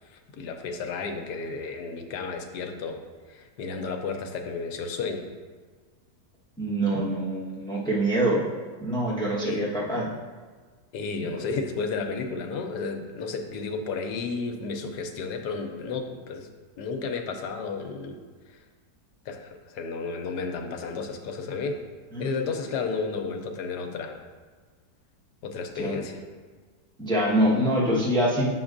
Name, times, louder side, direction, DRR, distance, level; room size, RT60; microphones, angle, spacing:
voice 1, 0.1-3.0 3.3-5.2 9.4-9.7 10.9-16.5 16.8-18.2 19.3-21.8 22.2-24.2 25.4-26.2, left 4 dB, 85° left, 5 dB, 1.3 m, -32 dB
voice 2, 6.6-8.4 8.8-10.1 11.2-11.3 22.1-22.3 25.7-26.0 27.0-28.5, right 1 dB, 5° left, -6 dB, 0.9 m, -25 dB
8.2 x 6.1 x 2.5 m, 1.5 s
omnidirectional pair, 1.8 m